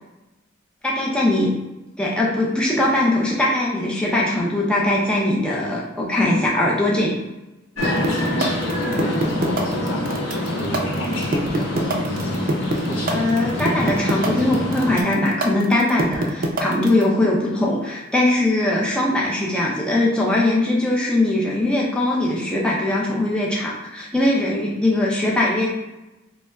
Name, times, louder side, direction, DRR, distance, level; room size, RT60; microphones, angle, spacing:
voice 1, 0.8-1.5 2.0-7.1 13.1-25.7, left 1 dB, 5° left, -4 dB, 0.5 m, -21 dB
sound 1, 7.8-15.0, left 1 dB, 85° left, 1.2 m, -25 dB
voice 2, 7.8-12.3 12.9-13.4, equal, 55° left, -1 dB, 0.7 m, -32 dB
sound 2, 7.8-17.0, right 2 dB, 45° right, 0.5 m, -24 dB
4.1 x 3.2 x 2.3 m, 1.0 s
head